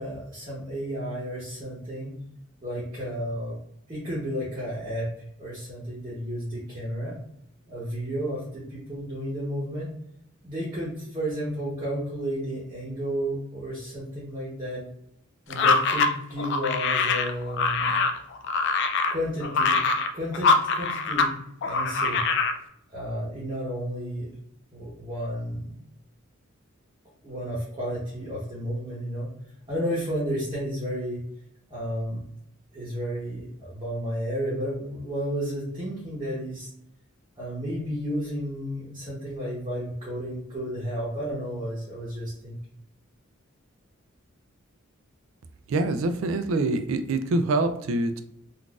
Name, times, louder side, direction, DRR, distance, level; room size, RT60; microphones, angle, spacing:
voice 1, 0.0-2.2 2.6-3.6 3.9-5.1 5.4-7.2 7.7-9.9 10.4-14.8 15.5-18.0 19.1-19.8 20.1-22.2 22.9-24.3 24.7-25.7 27.2-29.3 29.7-31.2 31.7-32.2 32.7-36.7 37.4-42.6, equal, 25° right, -7 dB, 0.9 m, -32 dB
sound 1, 15.5-21.3 21.6-22.6, left 4 dB, 55° left, 0.3 m, -24 dB
voice 2, 45.7-48.2, right 2 dB, 65° right, 8 dB, 0.3 m, -25 dB
3.9 x 2.4 x 2.3 m, 0.74 s
head